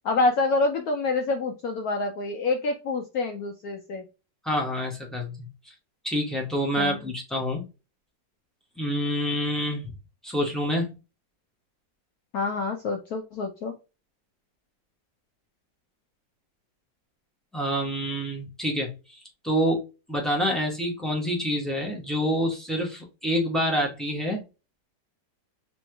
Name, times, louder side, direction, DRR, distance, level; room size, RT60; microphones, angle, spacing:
voice 1, 0.0-4.0 6.8-7.0 12.3-13.7, left 3 dB, 70° left, 4 dB, 0.9 m, -27 dB
voice 2, 4.4-5.7 6.0-7.7 8.8-9.9 10.2-10.9 17.5-24.4, equal, ahead, -2 dB, 0.3 m, -27 dB
3.1 x 3.1 x 3.2 m, 0.29 s
omnidirectional pair, 1.9 m